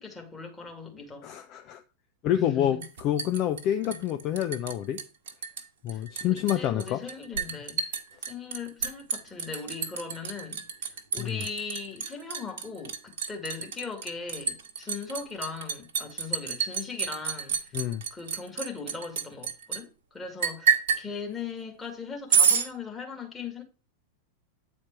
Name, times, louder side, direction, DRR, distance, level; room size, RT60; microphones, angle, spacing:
voice 1, 0.0-1.3 2.4-2.8 3.8-4.0 5.9-6.0 6.5-8.0 8.3-23.6, left 5 dB, 15° left, 2.0 m, -39 dB
voice 2, 1.2-1.8 2.2-5.0 5.8-7.0 11.2-11.4 17.7-18.0, left 11 dB, 40° left, 0.5 m, -28 dB
Liquid, 2.8-4.7 5.0-5.6 5.9-19.8 20.4-21.0 22.3-22.7, right 6 dB, 55° right, 1.1 m, -28 dB
8.8 x 4.3 x 4.5 m
figure-of-eight pair, 90°, 0 cm